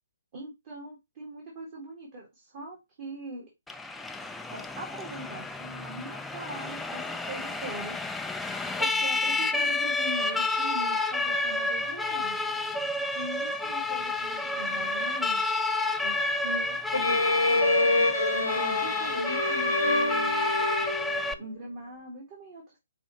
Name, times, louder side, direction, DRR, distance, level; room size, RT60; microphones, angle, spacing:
voice 1, 0.3-3.4 4.5-8.2 8.8-12.4 13.1-15.4 16.0-17.2 17.5-20.5 21.4-22.8, right 2 dB, 40° right, 1.7 m, -41 dB
Siren, 3.7-21.3, left 2 dB, 5° left, 0.3 m, -30 dB
Bowed string instrument, 16.9-21.4, left 2 dB, 80° left, 1.0 m, -26 dB
5.4 x 3.3 x 2.9 m
figure-of-eight pair, 130°, 0 cm